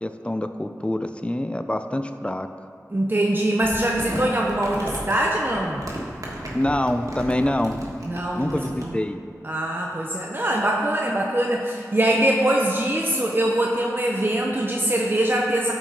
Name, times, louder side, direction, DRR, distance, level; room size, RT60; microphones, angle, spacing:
voice 1, 0.0-2.5 6.5-7.8 8.4-9.2, left 1 dB, 20° left, 8 dB, 0.4 m, -25 dB
voice 2, 2.9-5.8 8.0-9.0 9.4-15.7, right 1 dB, 35° right, -1 dB, 0.7 m, -23 dB
Crumpling crinkling, 3.6-8.9, right 1 dB, 65° right, 1.5 m, -34 dB
12.0 x 4.7 x 3.9 m, 2.2 s
wide cardioid pair, 40°, 6 cm